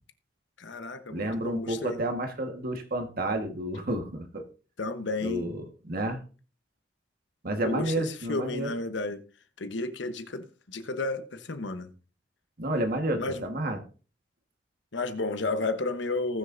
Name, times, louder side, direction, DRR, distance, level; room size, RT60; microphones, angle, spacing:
voice 1, 0.6-2.0 4.8-5.5 7.6-9.2 9.6-11.9 13.2-13.4 14.9-16.4, left 2 dB, 80° left, 1.1 m, -32 dB
voice 2, 1.1-4.5 5.2-6.2 7.4-8.7 12.6-13.8, right 1 dB, 55° right, 1.5 m, -30 dB
19.5 x 6.5 x 2.6 m
head